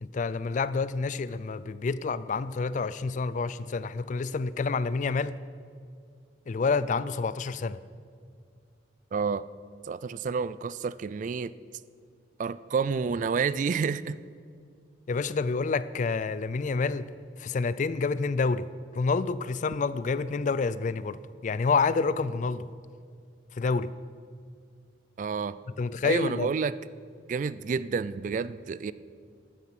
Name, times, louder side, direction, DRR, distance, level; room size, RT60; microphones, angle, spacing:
voice 1, 0.0-5.4 6.5-7.8 15.1-17.1 17.4-18.7 18.9-22.7 23.6-23.9 25.8-26.5, left 4 dB, 45° left, 0.4 m, -28 dB
voice 2, 9.1-9.4 9.8-11.5 12.4-14.2 25.2-25.6 26.0-26.8 27.3-28.9, right 5 dB, 45° right, 0.3 m, -29 dB
13.5 x 9.2 x 5.8 m
head